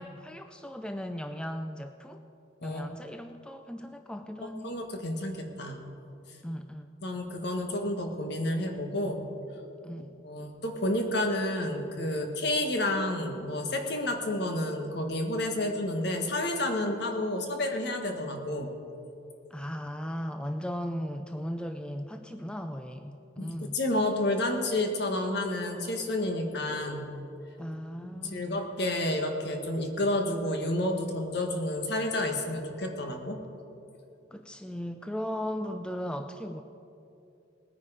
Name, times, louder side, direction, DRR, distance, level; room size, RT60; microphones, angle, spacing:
voice 1, 0.0-2.2 2.6-4.7 6.4-6.9 9.8-10.1 19.5-23.8 27.6-28.6 34.3-36.6, equal, 5° left, 7 dB, 0.4 m, -37 dB
voice 2, 4.4-5.8 7.0-9.3 10.0-18.8 23.4-27.1 28.0-33.4, left 1 dB, 60° left, 4 dB, 1.5 m, -30 dB
19.5 x 9.5 x 5.0 m, 2.7 s
head